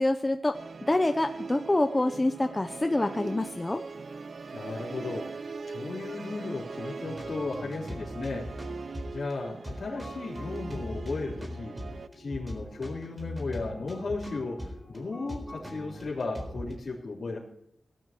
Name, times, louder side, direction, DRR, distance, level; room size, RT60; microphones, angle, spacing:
voice 1, 0.0-3.8, left 2 dB, 15° left, 7 dB, 0.7 m, -26 dB
Musical instrument, 0.5-12.1, right 4 dB, 55° right, 0.8 m, -41 dB
voice 2, 4.5-11.7 12.1-17.4, left 3 dB, 50° left, -6 dB, 3.6 m, -35 dB
sound 1, 7.0-16.7, equal, 15° right, 4.1 m, -41 dB
18.5 x 12.0 x 4.5 m, 0.76 s
wide cardioid pair, 165°, 0 cm